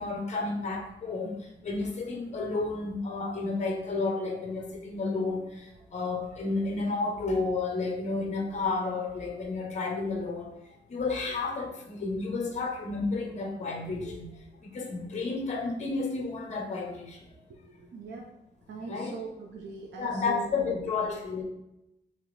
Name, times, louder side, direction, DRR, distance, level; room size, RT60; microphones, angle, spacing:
voice 1, 0.0-10.5 10.9-17.4 18.9-19.1 19.9-21.4, left 3 dB, 40° left, 1 dB, 0.9 m, -31 dB
voice 2, 17.9-18.3 18.7-20.9, right 4 dB, 80° right, 0 dB, 0.6 m, -41 dB
4.6 x 3.3 x 3.3 m, 0.86 s
wide cardioid pair, 145°, 18 cm